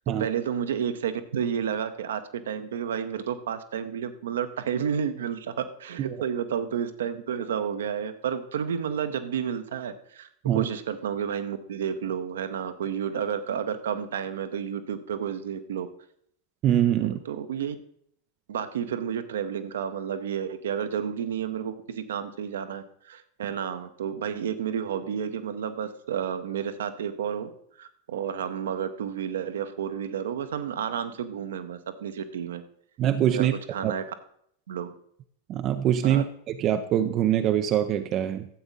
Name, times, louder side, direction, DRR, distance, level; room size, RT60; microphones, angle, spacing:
voice 1, 0.1-15.9 17.2-17.8 18.5-27.5 27.8-32.6 33.3-34.0 34.7-34.9 36.0-36.2, right 8 dB, 60° right, 10 dB, 0.8 m, -31 dB
voice 2, 16.6-17.2 33.0-33.5 33.8-33.9 35.5-38.5, right 11 dB, 35° right, 8 dB, 0.5 m, -24 dB
12.5 x 7.9 x 3.9 m, 0.68 s
figure-of-eight pair, 90°, 0 cm